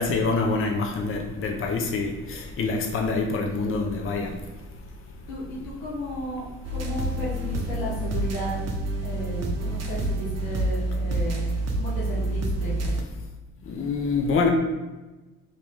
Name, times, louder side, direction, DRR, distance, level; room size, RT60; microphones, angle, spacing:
voice 1, 0.0-4.3 13.7-14.5, left 4 dB, 30° left, 2 dB, 0.6 m, -26 dB
voice 2, 5.3-6.4 6.7-12.9, equal, 85° left, -6 dB, 1.2 m, -34 dB
sound 1, 6.6-13.0, right 1 dB, 40° right, 0.7 m, -28 dB
2.9 x 2.8 x 3.5 m, 1.1 s
hypercardioid pair, 50°, 41 cm